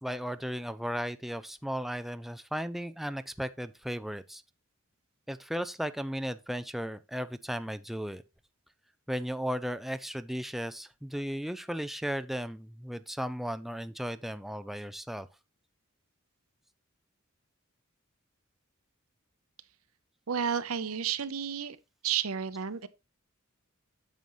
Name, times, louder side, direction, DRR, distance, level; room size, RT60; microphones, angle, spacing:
voice 1, 0.0-4.4 5.3-8.2 9.1-15.3, equal, ahead, 0.4 m, -35 dB
voice 2, 20.3-21.8 22.0-22.9, right 8 dB, 85° right, 0.7 m, -31 dB
9.2 x 6.9 x 3.1 m
head